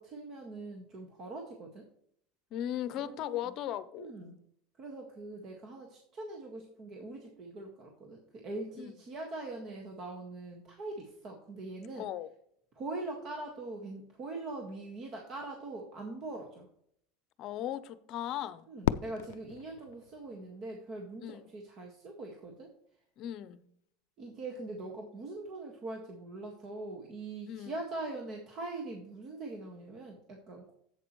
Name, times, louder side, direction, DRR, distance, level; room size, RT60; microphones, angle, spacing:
voice 1, 0.0-1.9 3.0-3.4 4.0-4.4 4.8-12.1 12.8-16.7 18.7-22.7 24.2-30.7, right 2 dB, 40° right, 1 dB, 1.7 m, -42 dB
voice 2, 2.5-4.1 8.8-8.9 12.0-12.3 17.4-18.7 21.2-21.4 23.2-23.6 27.5-27.7, left 11 dB, 50° left, 14 dB, 0.7 m, -37 dB
Fireworks, 18.8-21.0, left 12 dB, 85° left, 0.3 m, -36 dB
11.0 x 8.3 x 3.1 m, 0.69 s
supercardioid pair, 120°, 0 cm